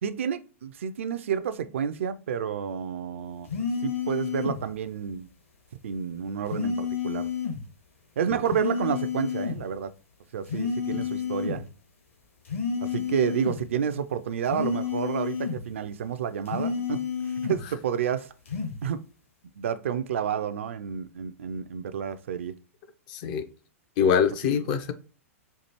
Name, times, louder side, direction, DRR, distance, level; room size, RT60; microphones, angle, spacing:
voice 1, 0.0-3.5 3.8-5.3 5.8-7.3 8.2-9.9 10.3-11.7 12.8-18.3 18.8-19.0 19.6-22.5 24.5-24.7, right 8 dB, 60° right, 0.4 m, -30 dB
sound 1, 3.5-4.6 6.5-7.6 8.5-9.6 10.5-11.6 12.4-13.6 14.5-15.6 16.4-17.6 18.4-18.8, left 6 dB, 65° left, 1.3 m, -30 dB
voice 2, 23.1-23.4 24.0-24.9, left 7 dB, 40° left, 0.4 m, -24 dB
4.5 x 2.4 x 2.9 m
figure-of-eight pair, 105°, 8 cm